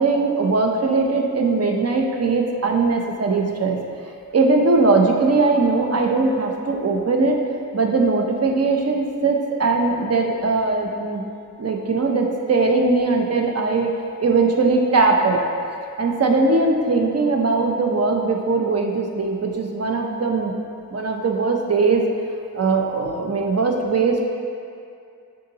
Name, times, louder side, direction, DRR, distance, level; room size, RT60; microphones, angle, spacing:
voice 1, 0.0-3.8 4.3-7.4 7.7-11.2 11.6-15.4 16.0-20.5 20.9-22.0 22.5-24.2, right 3 dB, 45° right, 2 dB, 0.6 m, -20 dB
9.7 x 3.8 x 2.8 m, 2.4 s
wide cardioid pair, 100°, 35 cm